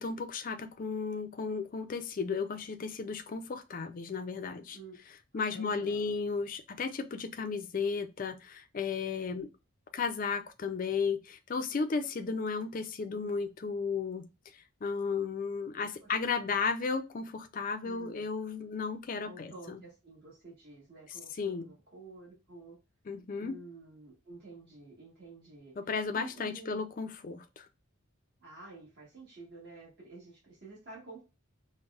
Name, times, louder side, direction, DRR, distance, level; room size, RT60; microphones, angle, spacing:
voice 1, 0.0-4.8 5.3-9.5 9.9-14.3 14.8-19.8 21.4-21.7 23.1-23.6 25.8-27.7, left 5 dB, 40° left, 0.4 m, -34 dB
voice 2, 5.3-6.1 15.8-16.1 16.4-16.7 17.8-18.3 19.2-22.8 23.4-25.7 26.1-26.8 28.4-31.2, right 3 dB, 50° right, 1.4 m, -50 dB
5.2 x 2.1 x 2.4 m
head